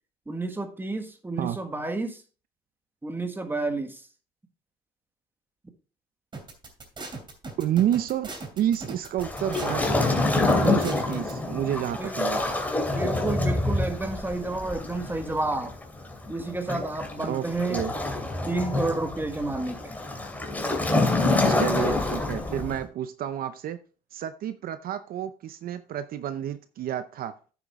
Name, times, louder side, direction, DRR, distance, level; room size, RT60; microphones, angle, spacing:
voice 1, 0.3-2.2 3.0-4.0 12.0-12.2 12.9-15.7 16.3-17.8 18.1-20.0, right 2 dB, 10° right, 6 dB, 1.6 m, -30 dB
sound 1, 6.3-11.3, right 3 dB, 30° right, 2.9 m, -38 dB
voice 2, 7.6-10.2 10.5-12.4 17.2-17.9 21.5-23.8 24.1-27.3, right 11 dB, 60° right, 11 dB, 0.6 m, -30 dB
Waves surf, 9.2-22.8, left 2 dB, 10° left, 2.6 m, -27 dB
9.2 x 7.2 x 3.6 m, 0.37 s
cardioid pair, 110°, 17 cm